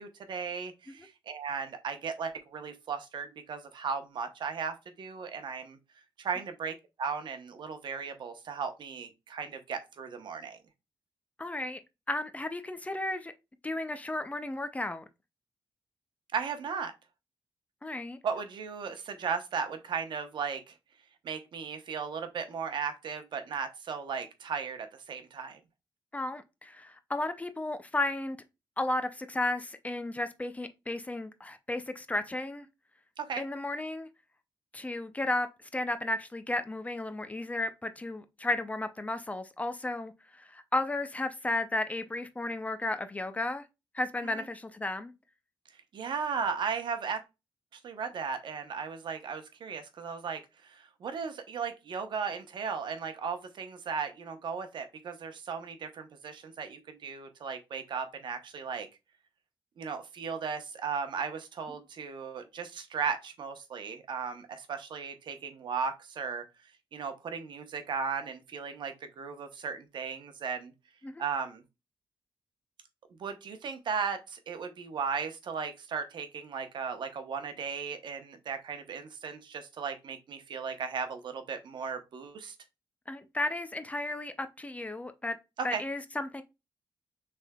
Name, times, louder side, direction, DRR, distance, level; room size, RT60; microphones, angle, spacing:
voice 1, 0.0-5.8 6.2-10.6 16.3-16.9 18.2-20.7 21.2-25.6 33.2-33.4 44.2-44.4 45.9-47.2 47.7-58.9 59.8-66.4 66.9-70.7 71.2-71.6 73.2-82.5 85.6-85.8, right 6 dB, 65° right, 0.9 m, -36 dB
voice 2, 11.4-11.8 12.1-13.3 13.6-15.0 17.8-18.2 26.1-28.4 28.8-32.7 33.4-34.1 34.7-35.5 35.7-43.6 43.9-45.1 71.0-71.2 83.1-85.4 85.6-86.4, left 2 dB, 15° left, 0.5 m, -33 dB
6.2 x 3.5 x 2.3 m
wide cardioid pair, 120°, 8 cm